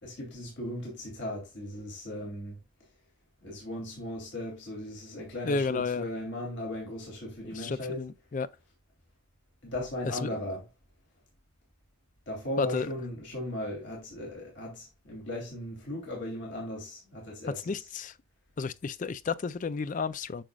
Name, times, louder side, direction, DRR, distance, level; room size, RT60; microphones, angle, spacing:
voice 1, 0.0-2.6 3.4-8.0 9.6-10.7 12.3-17.9, left 1 dB, 60° left, 2.8 m, -37 dB
voice 2, 5.4-6.0 7.5-8.5 10.0-10.3 12.6-12.9 17.7-18.1 18.6-20.4, left 4 dB, 40° left, 0.3 m, -32 dB
8.9 x 6.2 x 2.3 m
head